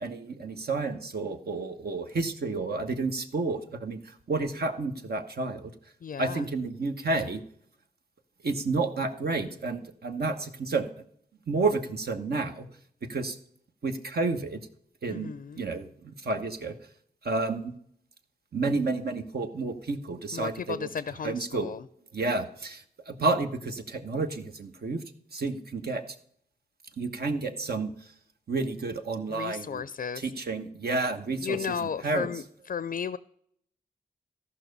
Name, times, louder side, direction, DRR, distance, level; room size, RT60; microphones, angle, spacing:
voice 1, 0.0-5.7 6.2-7.4 8.4-10.9 11.5-12.7 13.1-13.4 13.8-14.6 15.0-16.8 17.2-17.7 18.5-21.7 22.1-25.0 25.3-26.0 27.0-27.9 28.5-29.8 30.1-32.4, right 3 dB, 70° right, 5 dB, 1.2 m, -30 dB
voice 2, 6.0-6.4 15.1-15.6 20.3-21.8 29.3-30.2 31.4-32.4 32.7-33.2, left 7 dB, 60° left, 16 dB, 0.5 m, -34 dB
14.0 x 5.7 x 6.7 m, 0.67 s
cardioid pair, 55°, 17 cm